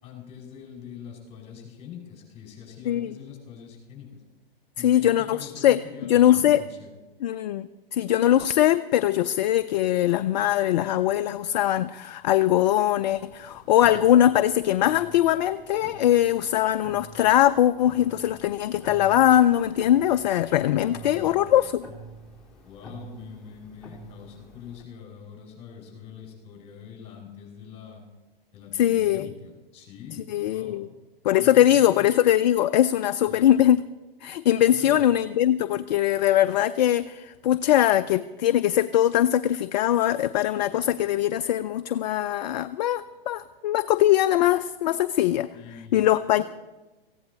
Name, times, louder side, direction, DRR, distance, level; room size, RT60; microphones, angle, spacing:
voice 1, 0.0-4.2 4.8-6.9 20.7-21.7 22.6-28.1 28.5-30.8 31.4-32.1 33.3-33.5 34.7-35.1 45.5-46.4, left 8 dB, 20° left, 1 dB, 5.2 m, -44 dB
voice 2, 4.8-6.6 7.2-21.8 28.7-29.3 30.3-30.9 31.2-33.8 34.2-45.5 45.9-46.4, left 12 dB, 45° left, 11 dB, 0.5 m, -21 dB
sound 1, 13.1-24.8, right 1 dB, ahead, 3.7 m, -47 dB
18.5 x 15.5 x 4.1 m, 1.1 s
hypercardioid pair, 120°, 30 cm